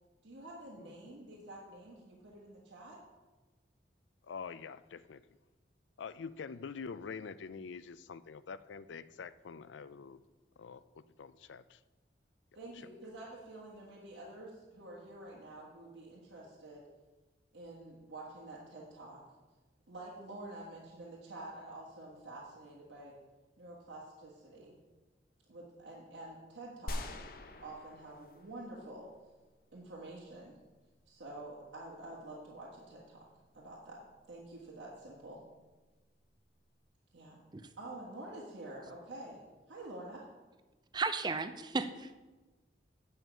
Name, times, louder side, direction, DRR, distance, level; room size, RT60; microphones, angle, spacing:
voice 1, 0.2-3.0 12.5-16.9 17.5-19.2 19.9-23.2 23.6-24.7 25.5-27.2 27.6-29.1 29.7-30.6 31.1-33.3 33.5-35.4 37.1-37.4 37.8-39.4 39.7-40.3, right 2 dB, 90° right, -5 dB, 1.6 m, -48 dB
voice 2, 0.8-1.1 4.2-5.2 6.0-10.2 10.6-11.8 12.7-12.9, left 5 dB, 90° left, 15 dB, 0.4 m, -46 dB
sound 1, 26.9-29.1, left 1 dB, 50° left, 0.7 m, -44 dB
voice 3, 40.9-42.1, right 4 dB, 25° right, 11 dB, 0.4 m, -34 dB
8.9 x 5.6 x 6.2 m, 1.2 s
head